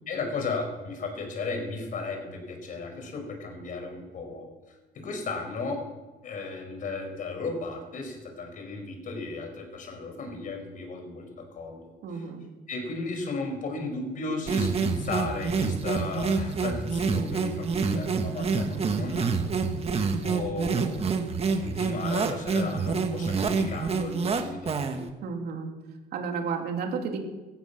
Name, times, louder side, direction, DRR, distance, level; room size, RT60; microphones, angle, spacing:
voice 1, 0.1-5.8 6.2-12.2 12.7-19.6 20.2-25.0, left 3 dB, 50° left, 4 dB, 5.0 m, -35 dB
voice 2, 12.0-12.4 25.2-25.7 26.1-27.2, right 5 dB, 70° right, 3 dB, 3.1 m, -32 dB
sound 1, 14.5-25.1, right 5 dB, 35° right, 1.6 m, -27 dB
17.5 x 14.0 x 5.9 m, 1.2 s
cardioid pair, 110°, 17 cm